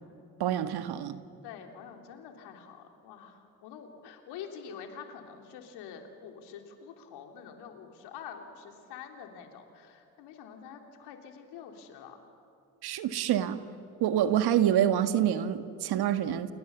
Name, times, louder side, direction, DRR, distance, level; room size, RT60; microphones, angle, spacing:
voice 1, 0.4-1.2 12.8-13.6 14.0-16.5, right 10 dB, 70° right, 10 dB, 1.6 m, -27 dB
voice 2, 1.4-12.2, left 7 dB, 75° left, 4 dB, 3.4 m, -46 dB
29.0 x 28.5 x 7.1 m, 2.6 s
hypercardioid pair, 55°, 40 cm